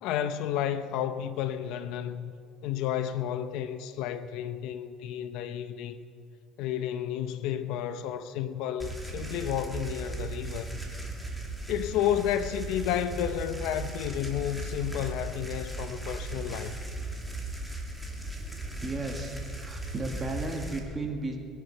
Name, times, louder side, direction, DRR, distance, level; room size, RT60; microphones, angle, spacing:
voice 1, 0.0-2.3 2.6-6.0 6.6-10.8 11.7-16.8, left 10 dB, 70° left, 0.8 m, -31 dB
sound 1, 8.8-20.8, right 2 dB, ahead, 2.3 m, -37 dB
voice 2, 18.8-21.4, right 2 dB, 20° right, 2.3 m, -34 dB
22.0 x 11.0 x 5.6 m
cardioid pair, 130°, 0 cm